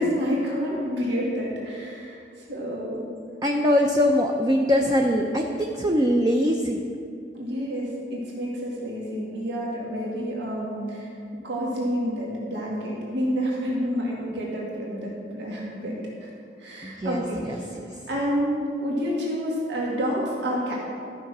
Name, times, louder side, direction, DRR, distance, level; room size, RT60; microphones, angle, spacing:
voice 1, 0.0-3.1 7.3-11.1 11.4-16.3 16.6-17.7 18.1-20.8, equal, 85° right, -4 dB, 2.0 m, -29 dB
voice 2, 3.4-6.8 16.8-18.0, equal, 20° right, 1 dB, 0.5 m, -23 dB
13.0 x 5.7 x 6.0 m, 2.4 s
head